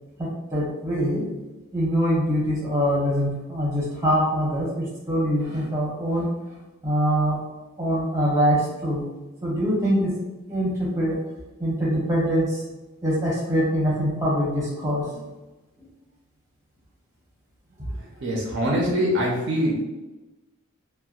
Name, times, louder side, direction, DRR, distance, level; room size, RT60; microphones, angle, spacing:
voice 1, 0.2-1.2 1.7-6.3 6.8-7.4 7.8-9.0 9.4-10.1 10.5-11.2 11.6-12.6 13.0-15.1 15.8-15.9 17.8-17.9, equal, 15° right, -5 dB, 0.7 m, -24 dB
voice 2, 17.9-19.7, equal, 50° right, -2 dB, 0.4 m, -24 dB
2.6 x 2.1 x 2.3 m, 1.1 s
head